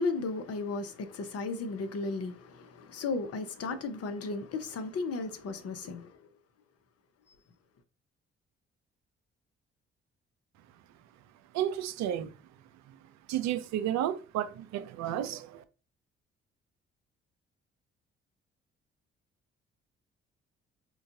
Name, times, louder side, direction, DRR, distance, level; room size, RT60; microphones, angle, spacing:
voice 1, 0.0-6.1, left 3 dB, 50° left, 0.8 m, -35 dB
voice 2, 11.5-12.3 13.3-15.6, right 11 dB, 65° right, 0.5 m, -32 dB
4.5 x 2.3 x 2.7 m
hypercardioid pair, 45°, 30 cm